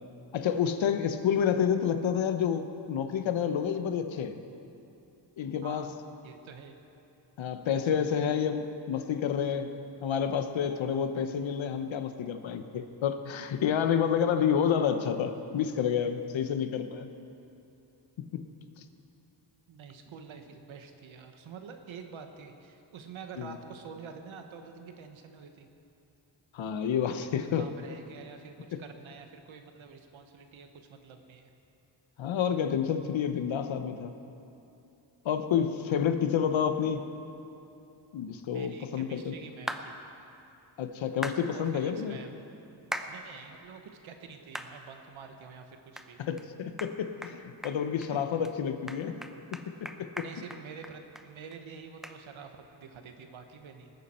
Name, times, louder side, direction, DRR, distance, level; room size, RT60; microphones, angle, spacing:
voice 1, 0.3-4.4 5.4-5.9 7.4-9.7 10.0-17.1 18.2-18.5 23.4-23.6 26.5-27.7 28.7-28.8 32.2-34.1 35.2-37.1 38.1-39.3 40.8-42.2 46.2-49.2 50.0-50.3, left 8 dB, 80° left, 9 dB, 0.9 m, -29 dB
voice 2, 5.6-6.0 6.2-6.8 7.9-8.3 19.7-25.7 27.3-31.5 38.5-40.0 41.5-42.4 43.1-46.2 48.1-48.2 50.1-53.9, right 6 dB, 85° right, 6 dB, 1.2 m, -47 dB
sound 1, 39.7-39.9 41.2-41.4 42.9-43.1 43.6-43.7 44.5-44.7 45.2-45.3 46.0-46.1 46.4-46.5 46.8-46.9 47.2-47.4 47.6-48.1 48.4-48.5 48.9-51.3 51.5-51.6 52.0-52.2, equal, ahead, 0.6 m, -38 dB
19.5 x 9.5 x 4.3 m, 2.8 s
wide cardioid pair, 105°, 46 cm